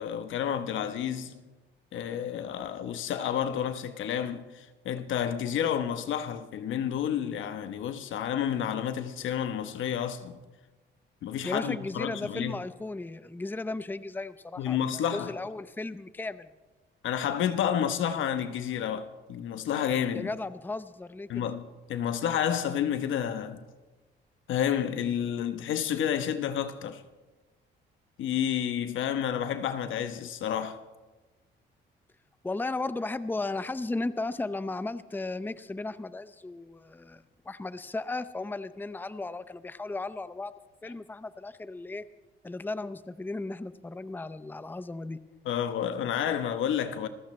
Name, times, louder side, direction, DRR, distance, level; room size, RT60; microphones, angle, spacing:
voice 1, 0.0-1.4 1.9-10.4 11.2-12.6 14.6-15.3 17.0-20.3 21.3-23.7 24.5-27.0 28.2-30.8 45.4-47.1, left 9 dB, 80° left, 1.0 m, -30 dB
voice 2, 11.4-16.5 20.1-21.5 32.4-40.5 40.8-42.0 42.4-45.2, left 2 dB, 10° left, 0.6 m, -35 dB
27.0 x 14.5 x 3.2 m
cardioid pair, 90°, 20 cm